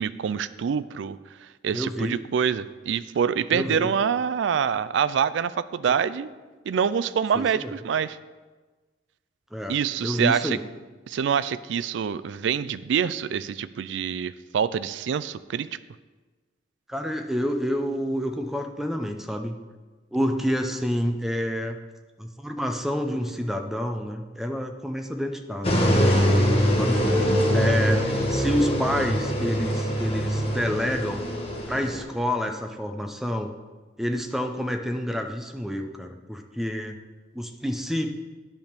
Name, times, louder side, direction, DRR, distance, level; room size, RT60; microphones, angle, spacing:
voice 1, 0.0-6.3 6.7-8.2 9.7-10.6 11.1-15.7, right 7 dB, 70° right, 15 dB, 0.3 m, -26 dB
voice 2, 1.7-2.2 3.5-3.9 7.3-7.7 9.5-10.6 16.9-19.6 20.1-21.8 22.2-26.4 26.7-27.0 27.5-31.2 31.7-33.5 34.0-37.0 37.3-38.1, equal, ahead, 5 dB, 0.5 m, -28 dB
sound 1, 25.6-32.0, equal, 30° left, 1.2 m, -23 dB
10.5 x 3.6 x 6.6 m, 1.3 s
head